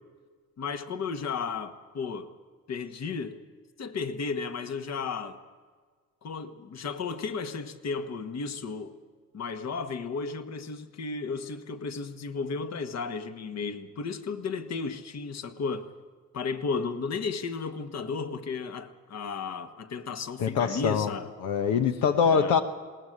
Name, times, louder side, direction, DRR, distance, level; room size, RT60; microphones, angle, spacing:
voice 1, 0.6-2.3 2.7-3.4 3.8-5.4 6.2-8.9 9.3-15.9 16.3-21.3 22.2-22.6, left 5 dB, 60° left, 8 dB, 1.6 m, -34 dB
voice 2, 20.4-21.1 21.4-22.6, left 6 dB, 90° left, 6 dB, 1.1 m, -24 dB
20.0 x 18.5 x 8.1 m, 1.6 s
cardioid pair, 90°, 30 cm